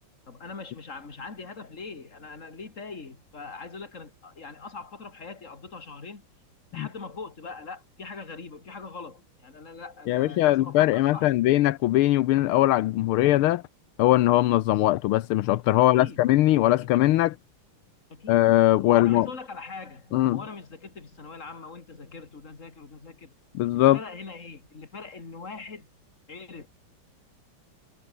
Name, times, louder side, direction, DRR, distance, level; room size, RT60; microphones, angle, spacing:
voice 1, 0.3-6.2 6.7-11.3 15.9-16.2 16.6-16.9 18.1-18.5 18.8-23.3 23.7-25.9 26.3-26.7, left 4 dB, 35° left, 3.1 m, -41 dB
voice 2, 10.1-13.6 14.0-17.4 18.3-19.3 20.1-20.4 23.6-24.0, left 15 dB, 85° left, 1.6 m, -21 dB
omnidirectional pair, 2.3 m